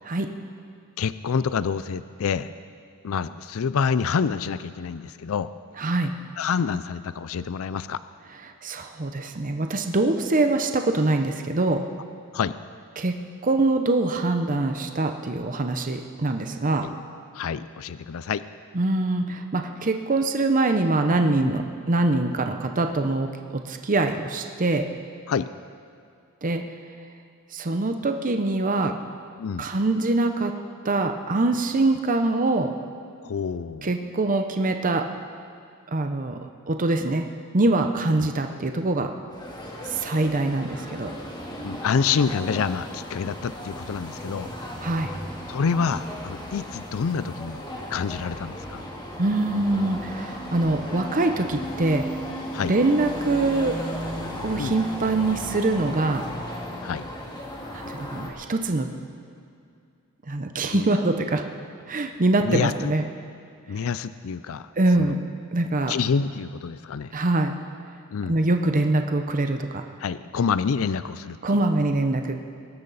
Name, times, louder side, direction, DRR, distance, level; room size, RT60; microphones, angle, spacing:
voice 1, 1.0-2.5 3.0-5.5 6.4-8.0 12.3-12.6 16.8-16.9 17.3-18.4 21.4-21.5 25.3-25.5 29.4-29.6 33.2-33.9 38.2-38.3 41.6-44.5 45.5-47.6 47.9-48.8 52.5-52.7 54.6-54.8 56.8-57.0 60.7-60.9 62.4-62.9 63.7-64.7 65.0-65.1 65.9-67.1 68.1-68.4 70.0-71.4, left 6 dB, 70° left, 14 dB, 0.4 m, -27 dB
voice 2, 5.8-6.1 8.6-11.8 13.0-13.1 13.4-16.9 18.7-23.3 23.7-24.9 26.4-26.6 27.5-28.9 29.6-30.5 30.8-32.7 33.8-35.0 35.9-36.4 36.7-37.3 37.5-39.1 39.8-41.1 44.8-45.1 49.2-52.1 52.6-53.8 54.4-56.2 57.7-58.9 60.3-61.4 61.9-63.0 64.8-65.2 65.5-65.9 67.1-67.5 68.3-69.8 71.4-72.4, right 2 dB, 40° right, 6 dB, 0.7 m, -23 dB
sound 1, 39.3-58.3, equal, 20° left, 2.0 m, -35 dB
22.5 x 12.5 x 4.1 m, 2.4 s
head